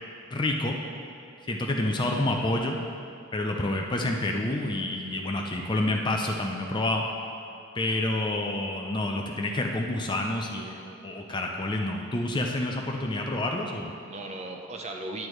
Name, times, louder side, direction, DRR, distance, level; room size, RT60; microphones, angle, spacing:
voice 1, 0.3-0.8 1.5-2.8 3.3-7.0 7.7-13.9, left 1 dB, 20° left, 1 dB, 0.5 m, -28 dB
voice 2, 2.0-2.3 3.5-3.9 14.1-15.3, right 2 dB, 30° right, 2 dB, 0.6 m, -38 dB
10.5 x 8.1 x 3.2 m, 2.5 s
head